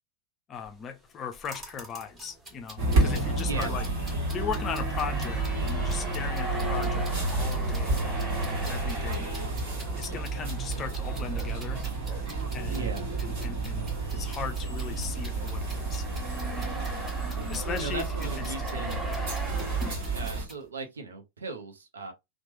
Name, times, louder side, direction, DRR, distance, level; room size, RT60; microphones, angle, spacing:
voice 1, 0.5-3.9 4.3-8.1 8.7-9.3 10.0-11.8 12.5-12.9 13.2-16.0 16.6-16.8 17.5-18.5 19.1-19.2, left 7 dB, 25° left, 0.4 m, -38 dB
sound 1, 0.7-0.9 1.4-13.6 13.8-20.0, equal, 10° right, 0.7 m, -42 dB
sound 2, 1.4-20.6, right 1 dB, 25° right, 1.4 m, -48 dB
sound 3, 2.8-20.5, right 3 dB, 50° right, 1.5 m, -30 dB
voice 2, 12.7-13.1 17.7-19.0 19.7-22.1, right 3 dB, 70° right, 0.7 m, -38 dB
3.0 x 2.1 x 3.0 m
figure-of-eight pair, 90°, 0 cm